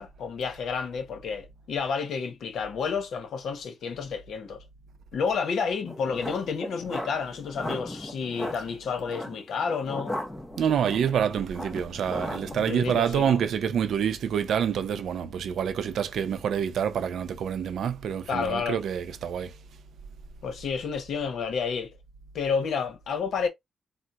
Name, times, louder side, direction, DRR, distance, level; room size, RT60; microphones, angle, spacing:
voice 1, 0.0-4.6 5.1-10.1 12.5-13.4 18.3-18.8 20.4-21.9 22.3-23.5, left 5 dB, 85° left, 0.7 m, -30 dB
sound 1, 5.8-12.6, left 1 dB, 10° left, 0.7 m, -37 dB
voice 2, 10.6-19.5, right 8 dB, 85° right, 0.4 m, -27 dB
3.9 x 2.0 x 2.3 m
wide cardioid pair, 165°, 0 cm